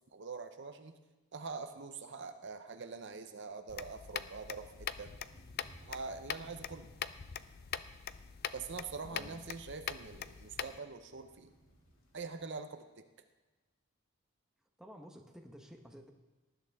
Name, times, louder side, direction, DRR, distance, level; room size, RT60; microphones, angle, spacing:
voice 1, 0.1-1.0 1.3-5.1 5.8-6.9 8.5-11.5 12.1-13.1, right 4 dB, 55° right, 8 dB, 0.7 m, -44 dB
sound 1, 3.7-10.8, left 8 dB, 45° left, 0.4 m, -43 dB
sound 2, 4.6-12.5, right 1 dB, 70° left, 2.4 m, -63 dB
voice 2, 9.1-9.4 14.8-16.1, equal, 5° right, 2 dB, 1.0 m, -52 dB
19.0 x 11.5 x 3.5 m, 1.2 s
head